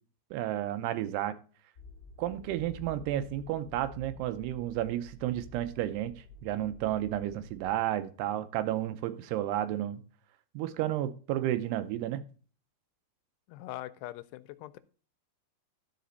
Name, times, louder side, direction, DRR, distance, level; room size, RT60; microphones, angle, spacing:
voice 1, 0.3-1.3 2.2-10.0 10.5-12.2, right 13 dB, 80° right, 11 dB, 2.7 m, -32 dB
sound 1, 1.7-7.7, left 4 dB, 30° left, 1.8 m, -51 dB
voice 2, 13.5-14.8, left 16 dB, 85° left, 14 dB, 2.6 m, -42 dB
12.5 x 5.1 x 4.0 m, 0.39 s
omnidirectional pair, 4.8 m